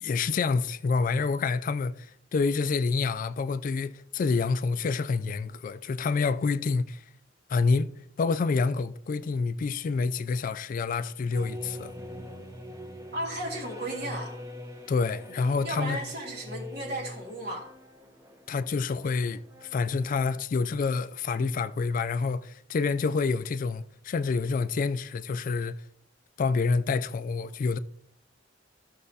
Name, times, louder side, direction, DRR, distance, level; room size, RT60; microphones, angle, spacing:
voice 1, 0.0-7.0 7.5-11.9 14.9-16.0 18.5-25.8 26.4-27.8, left 4 dB, 45° left, 0.3 m, -28 dB
sound 1, 11.3-20.2, equal, 15° right, 0.9 m, -43 dB
voice 2, 13.1-14.4 15.6-17.7, right 1 dB, 55° right, 1.9 m, -34 dB
13.5 x 6.4 x 2.7 m
head